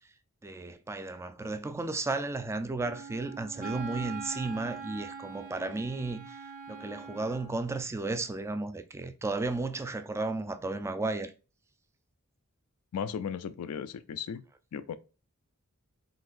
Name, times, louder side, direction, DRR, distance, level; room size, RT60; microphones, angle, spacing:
voice 1, 0.4-11.3, right 3 dB, 10° right, 0.3 m, -34 dB
Wind instrument woodwind instrument, 2.8-7.7, right 5 dB, 40° right, 0.7 m, -42 dB
voice 2, 12.9-14.4 14.7-15.0, left 7 dB, 85° left, 0.4 m, -36 dB
3.9 x 2.8 x 2.5 m
head